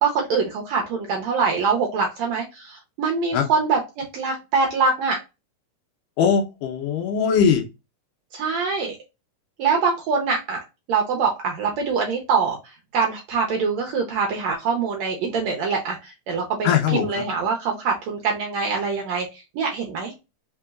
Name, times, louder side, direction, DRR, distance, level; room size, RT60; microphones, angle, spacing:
voice 1, 0.0-5.2 8.3-9.0 9.6-10.6 10.9-20.1, right 5 dB, 70° right, 1 dB, 1.7 m, -24 dB
voice 2, 6.2-7.6 16.6-17.1, left 7 dB, 80° left, 3 dB, 2.4 m, -20 dB
5.1 x 3.8 x 2.4 m, 0.25 s
omnidirectional pair, 4.0 m